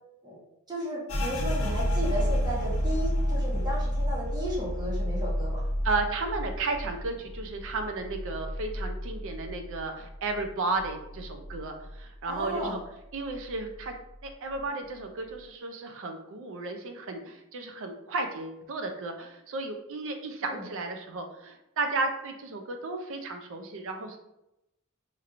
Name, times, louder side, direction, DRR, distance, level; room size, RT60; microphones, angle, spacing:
voice 1, 0.7-5.6 12.2-12.8 20.4-20.6, equal, 20° right, -6 dB, 1.2 m, -34 dB
sound 1, 1.1-10.5 10.8-12.0 12.3-12.8 13.3-13.9, equal, 85° left, 0.9 m, -30 dB
voice 2, 5.8-12.8 13.1-13.9 14.2-24.2, right 3 dB, 65° right, 5 dB, 0.5 m, -33 dB
4.3 x 2.9 x 2.5 m, 0.88 s
head